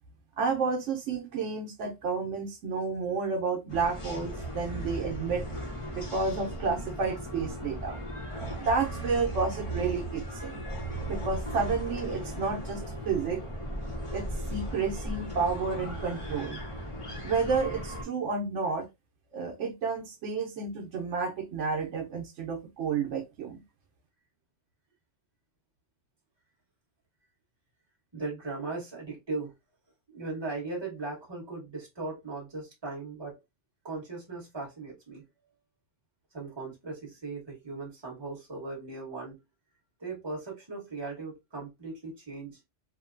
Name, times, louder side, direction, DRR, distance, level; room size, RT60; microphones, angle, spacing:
voice 1, 0.4-5.5 5.9-8.0 8.6-10.6 11.1-13.4 14.1-16.6 17.2-18.9 19.3-23.6, right 4 dB, 80° right, 1.0 m, -31 dB
sound 1, 3.7-18.0, right 1 dB, 30° left, 0.7 m, -37 dB
voice 2, 28.1-29.5 30.1-33.4 33.8-35.2 36.3-39.4 40.0-42.6, right 3 dB, 20° right, 1.1 m, -38 dB
3.0 x 2.1 x 2.4 m
omnidirectional pair, 1.3 m